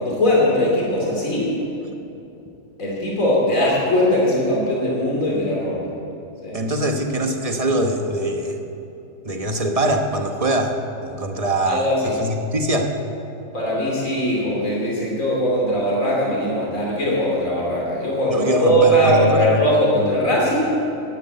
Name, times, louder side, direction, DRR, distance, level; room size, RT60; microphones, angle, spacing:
voice 1, 0.0-1.5 2.8-5.8 6.4-6.6 11.7-12.1 13.5-20.7, equal, 80° left, -4 dB, 3.2 m, -20 dB
voice 2, 6.5-8.6 9.2-10.8 11.1-12.9 18.3-19.7, right 1 dB, 30° right, 3 dB, 1.2 m, -22 dB
12.0 x 11.0 x 7.9 m, 2.9 s
omnidirectional pair, 1.4 m